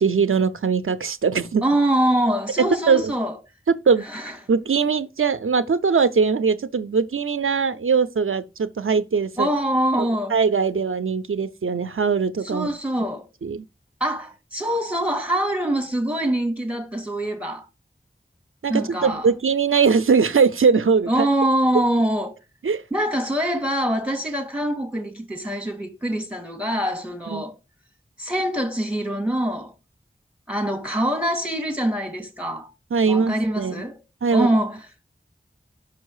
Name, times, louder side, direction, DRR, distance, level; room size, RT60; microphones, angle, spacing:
voice 1, 0.0-1.6 2.9-3.1 3.7-4.0 4.5-9.5 10.3-12.7 13.4-13.6 18.6-21.3 22.6-22.8 27.3-27.4 32.9-33.8 34.2-34.5, right 5 dB, 85° right, 0.5 m, -21 dB
voice 2, 1.6-3.4 4.1-4.3 9.4-10.4 12.4-13.3 14.0-17.7 18.7-19.3 21.1-22.4 22.9-27.5 28.2-29.7 30.5-32.7 33.0-34.0 34.3-34.8, right 1 dB, 5° right, 1.8 m, -24 dB
5.8 x 5.4 x 4.8 m
wide cardioid pair, 40°, 21 cm